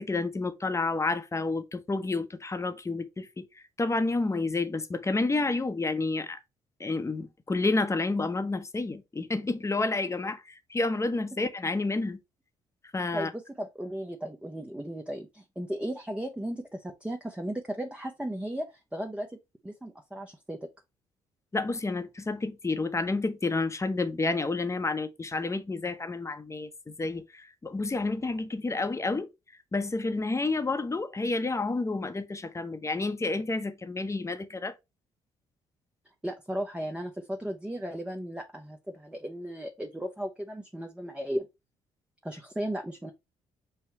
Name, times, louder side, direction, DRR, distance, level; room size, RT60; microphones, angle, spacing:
voice 1, 0.0-3.4 3.8-6.4 6.8-12.2 12.9-13.3 21.5-29.3 29.7-34.7, left 3 dB, 20° left, 0.9 m, -30 dB
voice 2, 13.1-19.4 19.6-20.6 36.2-41.5 42.2-43.1, right 1 dB, 10° right, 0.8 m, -35 dB
5.6 x 2.2 x 4.1 m
hypercardioid pair, 55°, 13 cm